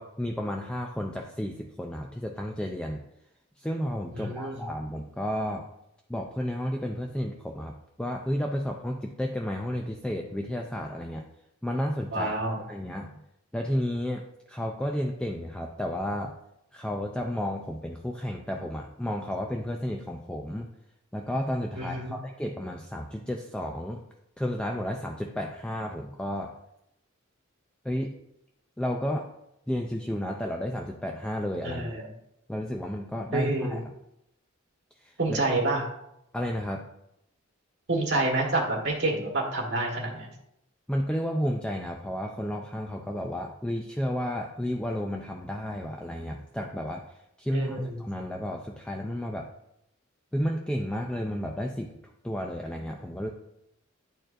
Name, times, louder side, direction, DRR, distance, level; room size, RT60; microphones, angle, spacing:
voice 1, 0.0-3.0 3.6-5.7 6.1-11.2 11.6-12.3 12.7-13.1 13.5-16.4 16.7-20.7 21.1-24.0 24.4-26.5 27.8-28.1 28.8-29.3 29.7-31.9 32.5-33.8 35.0-35.4 36.3-36.9 40.9-47.1 47.4-49.5 50.3-51.9 52.2-53.3, equal, 5° left, 1 dB, 0.4 m, -32 dB
voice 2, 4.1-4.6 12.1-12.6 21.8-22.2 31.6-32.0 33.3-33.8 35.2-35.8 37.9-40.3 47.5-47.9, right 2 dB, 60° right, 0 dB, 1.6 m, -28 dB
10.5 x 4.5 x 2.5 m, 0.82 s
head